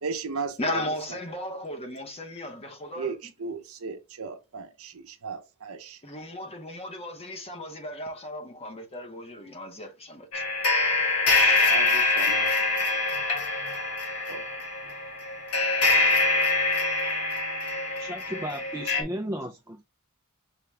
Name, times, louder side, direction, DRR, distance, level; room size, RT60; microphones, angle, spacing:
voice 1, 0.0-0.9 2.9-6.0 11.6-12.5 12.9-13.8 14.3-14.5, right 5 dB, 65° right, 0.7 m, -36 dB
voice 2, 0.6-3.1 6.0-10.4 11.5-11.7, left 1 dB, 25° left, 0.9 m, -36 dB
sound 1, 10.3-19.0, left 3 dB, 85° left, 1.4 m, -25 dB
voice 3, 18.0-19.8, equal, 10° right, 0.3 m, -34 dB
5.7 x 2.3 x 3.2 m
head